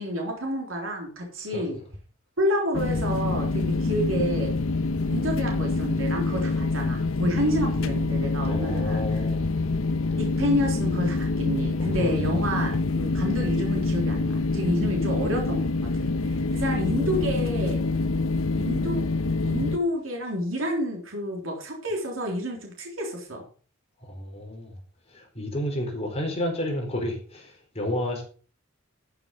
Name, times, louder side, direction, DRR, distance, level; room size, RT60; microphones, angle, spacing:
voice 1, 0.0-1.8 2.4-4.5 5.1-9.0 10.2-17.9 18.5-19.1 19.4-23.4, equal, 80° right, 3.5 m, -29 dB
sound 1, 2.7-19.8, left 3 dB, 85° left, 0.9 m, -26 dB
voice 2, 7.3-9.5 11.8-12.6 24.0-24.8 25.1-28.2, left 1 dB, 30° left, 4.5 m, -32 dB
13.0 x 6.9 x 5.4 m
head